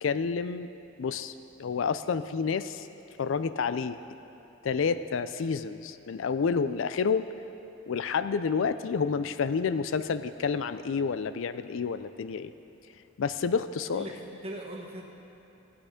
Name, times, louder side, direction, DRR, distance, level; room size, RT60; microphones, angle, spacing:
voice 1, 0.0-0.7 1.0-1.3 1.6-2.9 3.2-4.0 4.6-7.3 7.9-12.5 13.2-14.0, left 5 dB, 70° left, 12 dB, 0.4 m, -29 dB
voice 2, 13.9-15.0, right 1 dB, 30° right, -1 dB, 1.6 m, -39 dB
17.0 x 8.6 x 5.1 m, 2.9 s
head